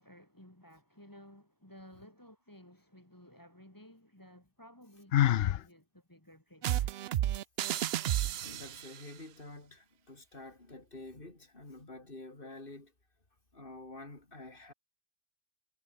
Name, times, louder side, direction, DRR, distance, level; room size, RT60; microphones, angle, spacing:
voice 1, 0.0-7.0, equal, 15° left, 3.9 m, -56 dB
Sigh, 5.1-5.6, left 11 dB, 60° left, 0.7 m, -25 dB
sound 1, 6.6-9.0, right 12 dB, 60° right, 0.7 m, -32 dB
voice 2, 8.2-12.9 13.5-14.7, left 2 dB, 45° left, 4.1 m, -49 dB
omnidirectional pair, 1.3 m